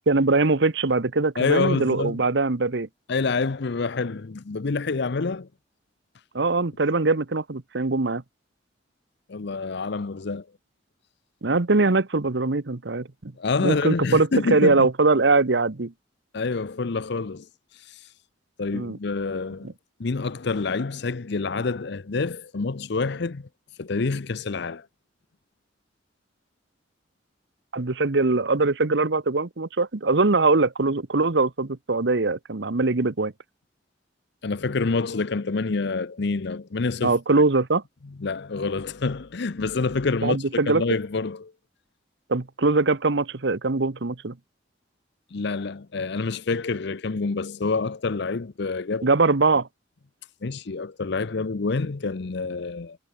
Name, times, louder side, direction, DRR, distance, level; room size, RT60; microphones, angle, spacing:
voice 1, 0.1-2.9 6.3-8.2 11.4-13.3 13.6-15.9 18.7-19.0 19.6-19.7 27.7-33.3 37.0-37.8 40.2-40.8 42.3-44.3 49.0-49.7, right 3 dB, 65° right, 1.1 m, -22 dB
voice 2, 1.4-2.2 3.1-5.5 9.3-10.4 13.4-14.9 16.3-17.5 18.6-19.7 20.0-23.5 23.8-24.9 34.4-37.2 38.0-40.4 40.7-41.5 45.3-49.1 50.4-53.0, left 4 dB, 65° left, 0.7 m, -27 dB
head